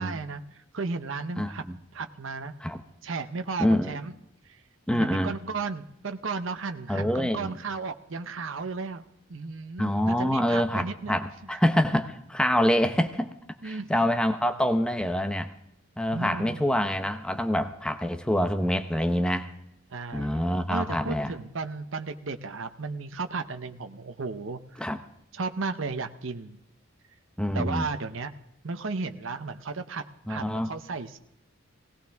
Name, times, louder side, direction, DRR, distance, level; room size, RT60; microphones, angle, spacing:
voice 1, 0.0-1.6 1.9-2.5 3.0-4.2 4.4-4.6 4.9-9.0 9.3-11.2 11.5-11.6 13.6-14.1 16.1-16.6 19.9-20.4 20.7-24.8 25.3-26.6 27.5-28.3 28.6-31.2, right 4 dB, 70° right, 7 dB, 0.8 m, -34 dB
voice 2, 1.4-1.8 2.6-2.8 3.6-4.0 4.9-5.3 6.9-7.6 9.8-13.3 13.6-15.5 16.0-19.5 20.1-21.3 24.8-25.0 27.4-27.9 30.3-30.7, equal, 5° left, 8 dB, 0.7 m, -26 dB
18.0 x 17.0 x 3.5 m, 0.77 s
head